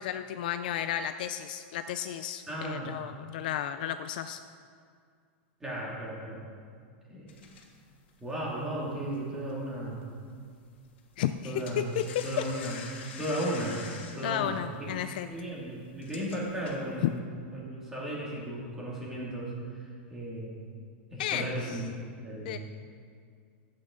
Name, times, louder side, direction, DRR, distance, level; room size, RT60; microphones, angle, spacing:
voice 1, 0.0-4.4 11.2-12.4 14.2-15.3 21.2-21.8 22.4-22.6, left 10 dB, 50° left, 10 dB, 0.3 m, -33 dB
voice 2, 2.5-3.0 5.6-6.4 7.1-7.4 8.2-10.0 11.4-11.8 12.2-12.8 13.2-13.8 14.2-14.6 15.3-17.3 17.5-19.8 20.1-20.6 21.1-21.8 22.2-22.5, right 1 dB, 5° right, -5 dB, 2.0 m, -35 dB
sound 1, 7.3-10.0 10.3-10.6 10.8-17.2, left 5 dB, 75° left, 1.5 m, -46 dB
13.0 x 8.6 x 3.7 m, 2.2 s
supercardioid pair, 175°, 6 cm